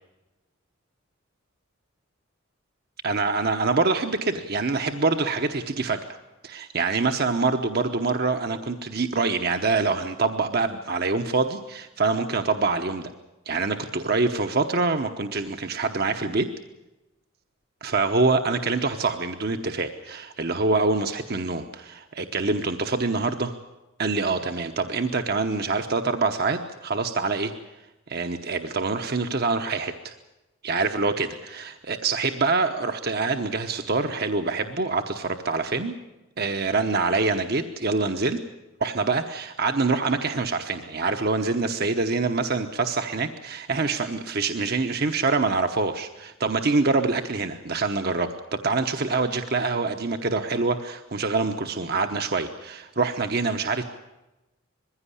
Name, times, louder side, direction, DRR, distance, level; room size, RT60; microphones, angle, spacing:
voice 1, 3.0-6.0 6.4-13.1 13.5-16.5 17.8-23.5 24.0-27.5 28.1-30.1 30.6-36.0 36.4-38.4 38.8-53.8, right 3 dB, 50° right, 6 dB, 1.0 m, -25 dB
21.5 x 16.0 x 9.9 m, 1.0 s
head